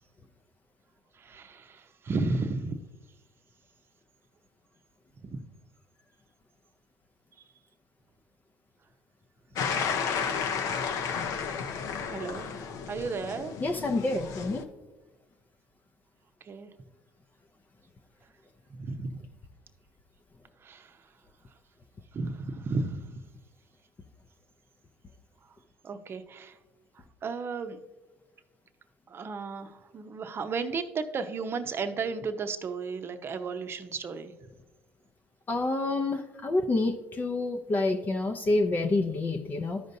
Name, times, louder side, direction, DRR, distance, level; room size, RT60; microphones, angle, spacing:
voice 1, 1.2-2.7 5.2-5.4 12.1-12.5 12.9-13.5 16.5-16.7 18.7-19.2 20.6-21.0 22.1-23.2 25.8-26.6 27.2-27.8 29.1-34.3, right 4 dB, 40° right, 8 dB, 0.7 m, -34 dB
sound 1, 9.6-14.6, left 6 dB, 65° left, 0.7 m, -32 dB
voice 2, 13.6-14.7 35.5-39.8, left 2 dB, 30° left, 3 dB, 0.7 m, -28 dB
12.5 x 5.2 x 2.7 m, 1.1 s
supercardioid pair, 85°, 6 cm